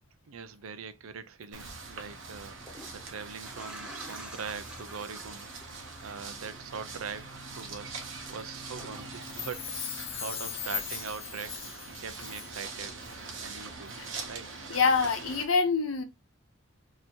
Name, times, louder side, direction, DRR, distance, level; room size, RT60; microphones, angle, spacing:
voice 1, 0.3-2.6 2.9-5.5 6.0-8.0 8.3-9.9 10.1-11.6 12.0-13.0 13.4-14.0 14.3-14.5, right 6 dB, 85° right, 0.5 m, -42 dB
sound 1, 1.5-15.4, right 4 dB, 65° right, 1.0 m, -43 dB
sound 2, 1.6-1.7 2.5-10.5 10.8-11.8 12.3-12.4, equal, 5° right, 0.9 m, -50 dB
Chime, 9.1-12.8 13.0-13.1, left 9 dB, 30° left, 0.4 m, -39 dB
voice 2, 14.7-16.0, left 4 dB, 75° left, 0.8 m, -25 dB
2.9 x 2.7 x 4.3 m
head